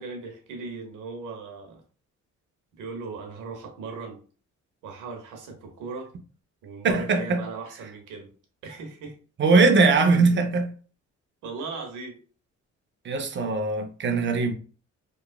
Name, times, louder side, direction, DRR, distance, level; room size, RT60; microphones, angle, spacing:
voice 1, 0.0-1.8 2.8-4.2 4.8-6.1 6.6-8.3 8.6-9.2 10.0-10.1 11.4-12.2 13.1-13.3, right 4 dB, 85° right, 0.9 m, -38 dB
voice 2, 6.8-7.4 9.4-10.7 13.0-14.5, right 4 dB, 40° right, 0.6 m, -21 dB
2.9 x 2.3 x 2.2 m
cardioid pair, 90°, 30 cm